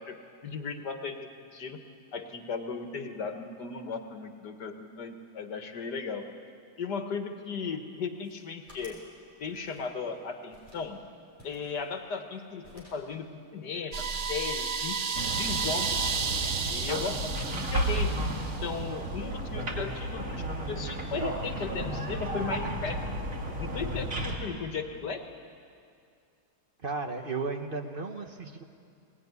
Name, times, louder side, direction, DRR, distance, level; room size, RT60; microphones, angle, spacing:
voice 1, 0.0-1.8 2.1-6.3 6.8-9.0 9.4-11.0 11.4-13.3 13.5-15.0 15.3-16.0 16.7-18.2 18.6-23.0 23.6-25.3, left 5 dB, 85° left, 5 dB, 2.2 m, -36 dB
sound 1, 8.1-9.1 9.4-10.2 10.5-10.9 11.4-12.4 12.6-13.1, equal, 10° right, 6.4 m, -55 dB
sound 2, 13.9-18.7, right 5 dB, 90° right, 0.3 m, -32 dB
sound 3, 15.1-24.4, right 1 dB, 50° right, 2.6 m, -33 dB
voice 2, 26.8-28.6, right 4 dB, 35° right, 5 dB, 1.2 m, -34 dB
20.5 x 20.0 x 9.6 m, 2.4 s
omnidirectional pair, 1.8 m